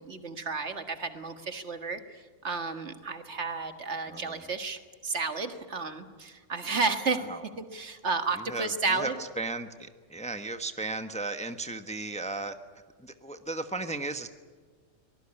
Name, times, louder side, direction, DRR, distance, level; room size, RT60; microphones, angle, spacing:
voice 1, 0.0-7.3 7.6-9.1, right 4 dB, 65° right, 8 dB, 2.0 m, -32 dB
voice 2, 4.1-4.4 7.2-7.4 8.3-12.5 13.0-14.3, right 3 dB, 5° left, 8 dB, 1.0 m, -35 dB
24.0 x 19.5 x 9.9 m, 1.5 s
omnidirectional pair, 1.3 m